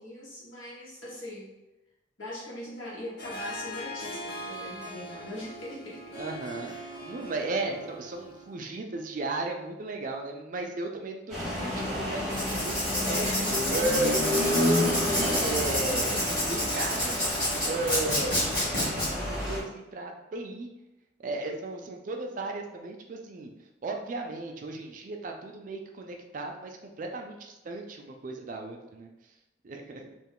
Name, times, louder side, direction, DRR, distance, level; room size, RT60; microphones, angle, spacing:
voice 1, 0.0-1.5 2.2-6.0 6.6-6.9 13.0-13.4, left 1 dB, 85° left, -6 dB, 1.1 m, -40 dB
Harp, 3.2-8.6, equal, 55° left, 0.6 m, -41 dB
voice 2, 6.1-6.7 7.0-13.3 13.7-20.7 21.2-23.5 23.8-29.1 29.6-30.2, right 2 dB, 40° right, 3 dB, 0.3 m, -35 dB
sound 1, 11.3-19.6, left 1 dB, ahead, 0.7 m, -30 dB
Writing, 12.3-19.1, left 1 dB, 20° left, 1.1 m, -29 dB
2.4 x 2.3 x 3.6 m, 0.98 s
head